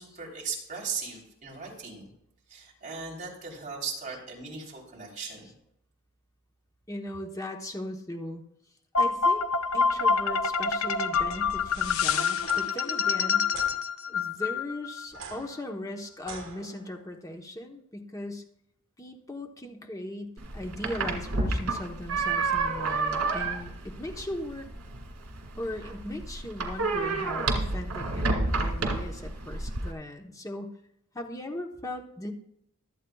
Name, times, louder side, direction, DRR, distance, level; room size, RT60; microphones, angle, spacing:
voice 1, 0.0-2.1 2.5-5.5, right 5 dB, 35° right, -3 dB, 3.6 m, -38 dB
voice 2, 6.9-8.4 9.0-9.5 9.7-13.5 14.1-18.4 19.0-24.7 25.6-30.8 31.1-32.3, left 1 dB, 15° left, 3 dB, 1.0 m, -38 dB
sound 1, 8.9-15.0, left 5 dB, 70° left, 0.6 m, -26 dB
sound 2, 12.3-12.6 13.5-13.7 15.1-17.1, right 5 dB, 65° right, 1.8 m, -44 dB
sound 3, 20.4-29.9, right 3 dB, 85° right, 2.1 m, -30 dB
24.5 x 8.4 x 2.4 m, 0.76 s
head